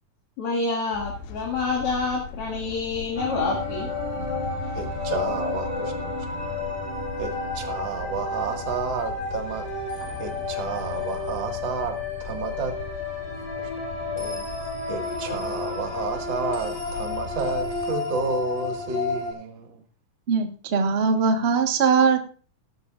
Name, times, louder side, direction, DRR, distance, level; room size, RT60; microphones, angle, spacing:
voice 1, 0.4-3.9, left 4 dB, 45° left, -2 dB, 2.9 m, -27 dB
sound 1, 0.9-17.9, left 6 dB, 90° left, 2.8 m, -40 dB
sound 2, 3.1-19.3, left 3 dB, 20° left, 4.2 m, -31 dB
voice 2, 4.8-6.1 7.2-7.3 7.5-9.6 10.2-12.7 14.2-14.5 14.9-19.8, right 4 dB, 40° right, 4 dB, 2.3 m, -31 dB
voice 3, 20.3-22.2, right 5 dB, 90° right, 5 dB, 0.5 m, -21 dB
17.0 x 12.5 x 2.5 m, 0.39 s
omnidirectional pair, 3.8 m